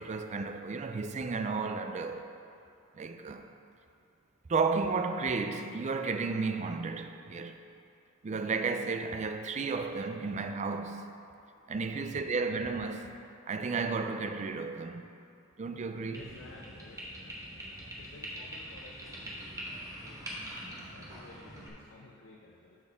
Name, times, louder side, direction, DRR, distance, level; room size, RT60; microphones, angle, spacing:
voice 1, 0.0-2.2 2.9-3.5 4.5-7.6 8.2-11.1 11.7-13.2 13.5-15.0 15.6-16.2, right 4 dB, 35° right, 7 dB, 0.4 m, -33 dB
voice 2, 12.0-12.4 16.1-22.8, left 2 dB, 65° left, -3 dB, 0.7 m, -54 dB
sound 1, 16.1-21.7, equal, 15° right, 1.1 m, -43 dB
12.0 x 4.3 x 3.6 m, 2.6 s
head